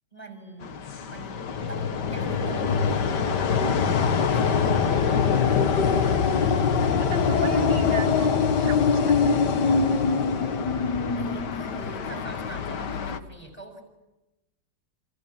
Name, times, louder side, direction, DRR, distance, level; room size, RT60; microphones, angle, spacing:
voice 1, 0.1-0.8 1.1-1.4 1.7-6.6 10.4-10.6 11.1-13.8, right 2 dB, 20° left, 6.4 m, -44 dB
sound 1, 0.6-13.2, left 5 dB, 80° left, 1.9 m, -23 dB
voice 2, 7.0-10.1 12.0-12.3, right 6 dB, 90° right, 2.1 m, -37 dB
29.0 x 26.5 x 7.3 m
omnidirectional pair, 1.8 m